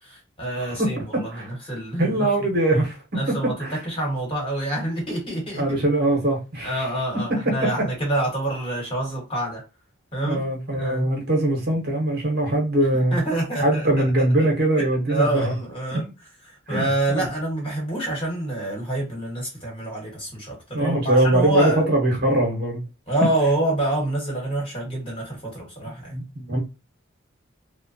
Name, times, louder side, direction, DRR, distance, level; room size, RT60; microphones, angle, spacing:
voice 1, 0.0-2.3 3.1-5.8 6.6-9.6 10.1-10.4 10.7-11.1 12.9-14.0 14.8-21.8 23.1-26.1, right 1 dB, 25° left, 1.3 m, -27 dB
voice 2, 0.7-1.5 2.0-3.0 3.3-3.7 5.6-6.8 7.4-7.6 10.3-13.2 13.6-15.5 15.9-16.0 16.7-17.2 20.7-22.8 26.1-26.6, right 1 dB, 50° right, 0.9 m, -22 dB
3.0 x 2.1 x 2.7 m
head